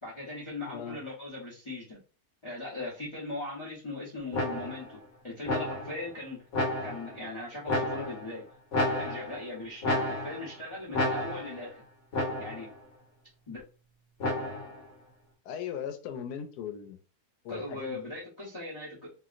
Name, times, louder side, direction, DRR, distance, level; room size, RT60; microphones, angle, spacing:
voice 1, 0.0-2.0 2.4-5.0 5.2-6.4 6.8-8.5 8.9-11.8 12.4-12.7 13.5-13.6 17.5-19.1, left 2 dB, 25° left, 0.7 m, -39 dB
voice 2, 0.7-1.0 15.5-17.0 17.4-18.1, left 8 dB, 85° left, 1.1 m, -38 dB
sound 1, 4.3-4.9 5.5-6.0 6.5-7.2 7.7-8.3 8.7-9.5 9.8-10.5 10.9-11.6 12.1-12.7 14.2-14.8, left 1 dB, 55° left, 1.2 m, -31 dB
3.0 x 2.7 x 2.4 m
omnidirectional pair, 1.7 m